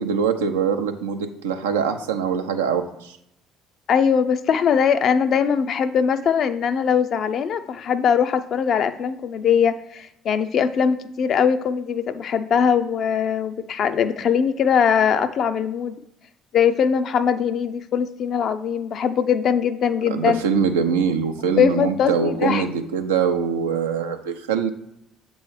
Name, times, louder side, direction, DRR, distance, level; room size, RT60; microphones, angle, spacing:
voice 1, 0.0-3.1 20.1-24.7, right 6 dB, 90° right, 5 dB, 0.5 m, -23 dB
voice 2, 3.9-15.9 16.5-20.4 21.6-22.7, left 7 dB, 55° left, 10 dB, 0.4 m, -21 dB
7.5 x 3.1 x 4.7 m, 0.78 s
hypercardioid pair, 65°, 0 cm